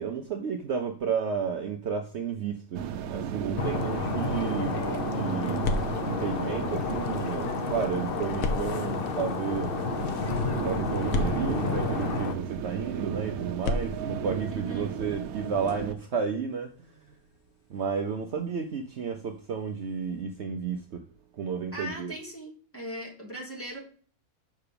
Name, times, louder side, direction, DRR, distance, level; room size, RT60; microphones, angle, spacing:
voice 1, 0.0-4.8 5.1-5.7 6.1-9.7 10.6-17.0 17.7-21.0 21.3-22.1, right 6 dB, 60° right, 0.9 m, -32 dB
sound 1, 2.7-15.9, right 8 dB, 90° right, 1.1 m, -34 dB
sound 2, 3.6-12.4, left 6 dB, 50° left, 0.8 m, -31 dB
sound 3, 5.0-7.3 8.4-12.3 13.5-20.2, left 2 dB, 75° left, 1.3 m, -38 dB
voice 2, 14.5-14.9 21.7-23.8, right 1 dB, 10° left, 2.8 m, -39 dB
5.9 x 5.7 x 6.8 m
omnidirectional pair, 1.5 m